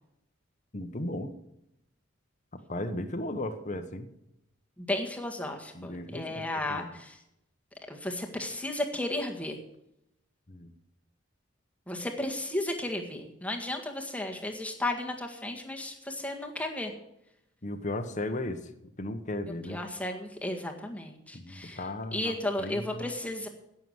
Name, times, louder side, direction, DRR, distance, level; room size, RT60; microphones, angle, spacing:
voice 1, 0.7-1.4 2.7-4.1 5.7-6.9 10.5-10.7 17.6-18.7 19.0-19.8 21.3-23.1, left 1 dB, 40° left, 6 dB, 1.1 m, -36 dB
voice 2, 4.8-7.2 7.9-9.6 11.9-16.9 19.7-21.8 22.1-23.5, left 1 dB, 5° left, 2 dB, 1.8 m, -34 dB
16.5 x 7.0 x 8.0 m, 0.83 s
head